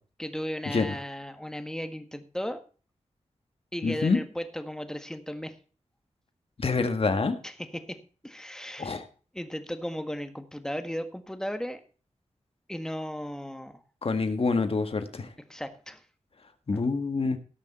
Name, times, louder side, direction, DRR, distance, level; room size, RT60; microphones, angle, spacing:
voice 1, 0.2-2.6 3.7-5.5 7.4-9.0 9.3-11.8 12.7-13.8 15.5-16.0 16.7-16.8, equal, 5° left, 8 dB, 1.6 m, -36 dB
voice 2, 3.8-4.2 6.6-7.3 8.8-9.0 14.0-15.3 16.7-17.4, left 4 dB, 55° left, 8 dB, 1.7 m, -26 dB
17.5 x 6.5 x 4.3 m, 0.37 s
wide cardioid pair, 75°, 12 cm